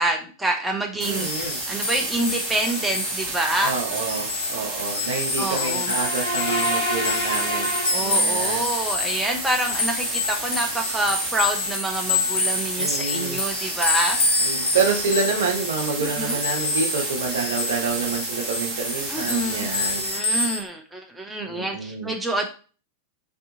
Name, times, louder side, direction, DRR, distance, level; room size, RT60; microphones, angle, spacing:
voice 1, 0.0-3.7 5.4-5.9 7.9-14.2 16.0-16.4 19.1-19.7 20.0-22.5, right 1 dB, 5° right, 2 dB, 0.5 m, -27 dB
sound 1, 1.0-20.6, left 3 dB, 60° left, 0.7 m, -28 dB
sound 2, 1.0-20.2, right 2 dB, 30° right, 1.0 m, -32 dB
voice 2, 1.0-1.7 3.6-8.6 12.7-13.4 14.4-20.0 20.3-20.4 21.4-22.2, right 5 dB, 60° right, 2 dB, 0.6 m, -28 dB
sound 3, 5.7-8.7, equal, 35° left, 0.8 m, -28 dB
2.6 x 2.3 x 2.6 m, 0.37 s
figure-of-eight pair, 90°, 0 cm